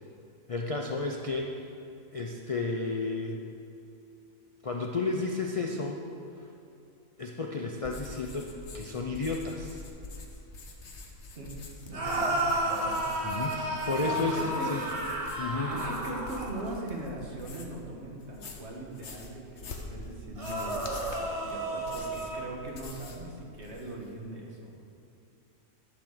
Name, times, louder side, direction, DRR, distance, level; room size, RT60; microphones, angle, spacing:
voice 1, 0.5-1.5 2.1-3.4 4.6-6.0 7.2-9.8 13.2-14.8 15.4-15.7, left 3 dB, 40° left, 1 dB, 0.5 m, -32 dB
sound 1, 7.8-17.8 18.2-23.3 23.5-24.1, left 3 dB, 60° left, 1.3 m, -45 dB
voice 2, 11.8-13.0 14.0-14.9 15.7-20.9 21.2-24.9, right 1 dB, 55° right, -2 dB, 1.8 m, -40 dB
sound 2, 11.9-16.7 20.4-22.4, right 1 dB, 25° right, 1.3 m, -32 dB
11.0 x 6.1 x 6.6 m, 2.7 s
omnidirectional pair, 1.4 m